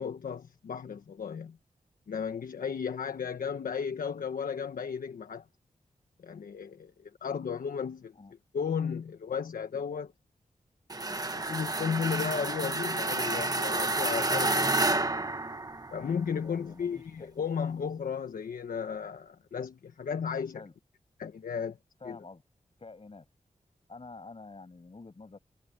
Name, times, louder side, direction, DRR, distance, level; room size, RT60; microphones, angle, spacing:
voice 1, 0.0-1.6 2.1-5.4 6.2-8.1 8.5-10.1 11.3-14.8 15.9-20.6 21.2-21.8 22.0-22.2, left 6 dB, 90° left, 1.3 m, -34 dB
sound 1, 10.9-16.1, right 2 dB, 25° right, 1.4 m, -30 dB
voice 2, 16.1-17.3 20.5-20.7 22.0-22.4 22.8-23.3 23.9-25.4, left 3 dB, 45° left, 7.3 m, -48 dB
wide cardioid pair, 70°, 14 cm